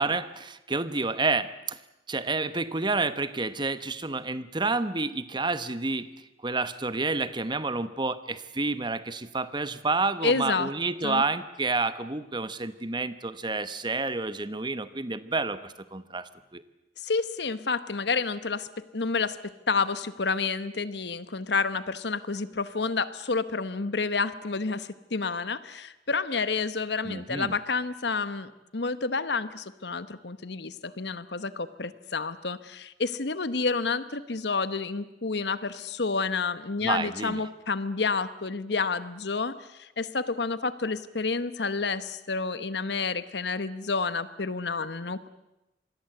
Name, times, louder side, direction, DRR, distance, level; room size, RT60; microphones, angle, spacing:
voice 1, 0.0-1.8 2.1-6.1 6.4-16.6 27.0-27.5 36.8-37.4, right 3 dB, 25° right, 13 dB, 1.1 m, -29 dB
voice 2, 10.2-10.7 11.0-11.2 17.0-18.7 18.9-19.4 19.7-39.5 39.8-45.3, left 4 dB, 65° left, 14 dB, 1.1 m, -29 dB
26.5 x 21.0 x 8.0 m, 0.95 s
head